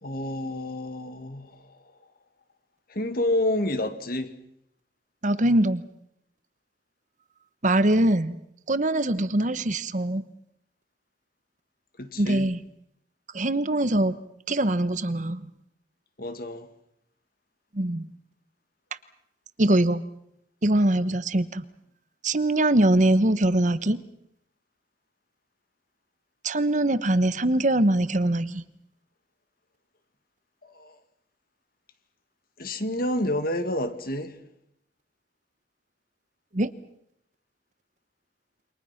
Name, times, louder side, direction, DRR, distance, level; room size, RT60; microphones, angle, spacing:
voice 1, 0.0-1.9 2.9-4.3 12.0-12.5 16.2-16.7 30.6-31.0 32.6-34.4, left 1 dB, 55° left, 2.1 m, -29 dB
voice 2, 5.2-5.8 7.6-8.4 8.7-10.2 12.2-12.6 13.3-14.2 14.5-15.5 17.7-18.1 19.6-20.0 20.6-21.6 22.2-24.0 26.4-28.6 36.5-36.7, right 1 dB, 45° right, 1.1 m, -22 dB
28.5 x 25.5 x 5.9 m
head